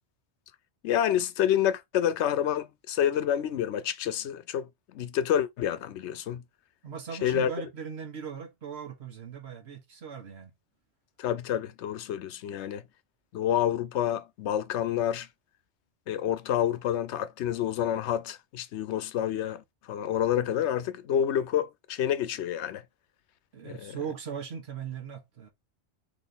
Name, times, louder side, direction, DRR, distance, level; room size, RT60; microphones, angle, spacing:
voice 1, 0.8-6.4 7.2-7.5 11.2-12.8 13.3-15.3 16.1-19.6 19.9-22.8 23.6-23.9, left 10 dB, 85° left, 0.9 m, -28 dB
voice 2, 6.8-10.5 23.5-25.5, right 7 dB, 70° right, 1.4 m, -39 dB
4.0 x 3.0 x 4.0 m
omnidirectional pair, 1.1 m